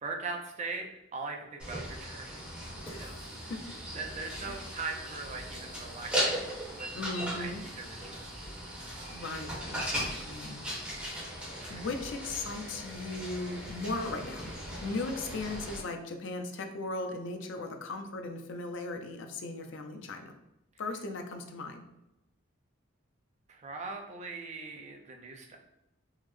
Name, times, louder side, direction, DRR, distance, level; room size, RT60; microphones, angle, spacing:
voice 1, 0.0-2.5 2.9-3.5 3.9-7.0 7.4-8.5 9.0-9.2 10.6-10.8 11.5-11.9 23.5-25.6, right 4 dB, 35° right, 3 dB, 0.4 m, -41 dB
sound 1, 1.6-15.8, equal, 5° right, 0.9 m, -38 dB
voice 2, 2.8-3.8 4.4-4.6 6.9-7.6 9.1-10.7 11.7-20.4 20.8-21.9, left 2 dB, 65° left, 5 dB, 0.4 m, -38 dB
3.5 x 2.0 x 3.1 m, 0.88 s
head